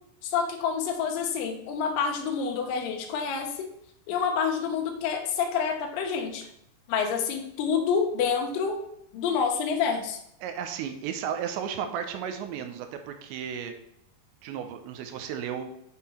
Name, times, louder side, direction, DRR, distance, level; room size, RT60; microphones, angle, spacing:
voice 1, 0.2-3.7 4.1-6.4 6.9-8.8 9.1-10.2, left 6 dB, 75° left, 2 dB, 2.1 m, -28 dB
voice 2, 10.4-13.8 14.4-15.7, right 8 dB, 85° right, 7 dB, 2.9 m, -34 dB
8.0 x 3.7 x 4.3 m, 0.76 s
omnidirectional pair, 5.2 m